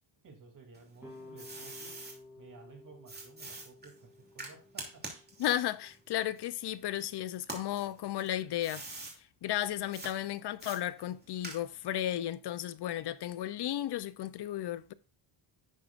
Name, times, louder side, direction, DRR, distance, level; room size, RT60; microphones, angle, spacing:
voice 1, 0.2-2.0 2.4-5.0, right 4 dB, 40° right, 3.0 m, -55 dB
sound 1, 0.7-2.2 3.1-7.0 7.4-9.2 9.9-10.1 10.6-11.9, right 2 dB, 20° right, 2.9 m, -45 dB
sound 2, 1.0-6.1, left 2 dB, 5° right, 2.8 m, -54 dB
voice 2, 5.4-8.8 9.4-14.9, left 12 dB, 60° left, 0.7 m, -34 dB
11.0 x 7.5 x 2.5 m
cardioid pair, 125°, 46 cm